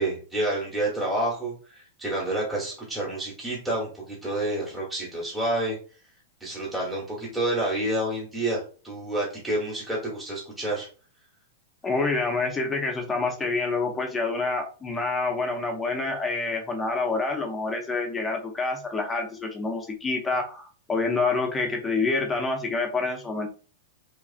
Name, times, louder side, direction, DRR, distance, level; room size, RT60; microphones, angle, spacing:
voice 1, 0.0-5.8 6.4-10.9, right 1 dB, 5° right, -5 dB, 0.9 m, -29 dB
voice 2, 11.8-23.5, left 3 dB, 10° left, 3 dB, 0.5 m, -27 dB
2.8 x 2.3 x 2.4 m, 0.38 s
supercardioid pair, 155°, 0 cm